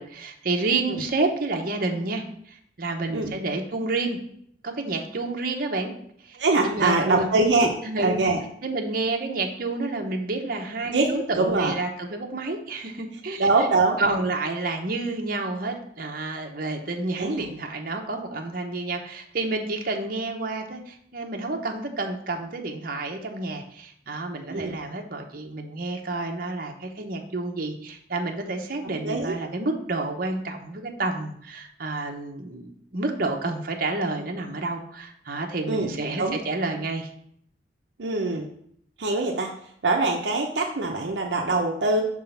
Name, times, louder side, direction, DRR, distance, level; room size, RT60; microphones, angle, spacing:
voice 1, 0.0-4.2 4.6-5.9 6.2-6.4 6.6-7.3 7.8-8.2 8.6-13.5 14.0-37.1, right 3 dB, 55° right, 2 dB, 1.0 m, -29 dB
voice 2, 6.3-7.7 8.0-8.4 10.9-11.7 13.4-14.0 17.2-17.5 24.5-24.7 29.0-29.4 35.6-36.4 38.0-38.5 39.0-39.5 39.8-42.0, right 3 dB, 75° right, 1 dB, 0.7 m, -23 dB
6.2 x 3.7 x 5.7 m, 0.66 s
head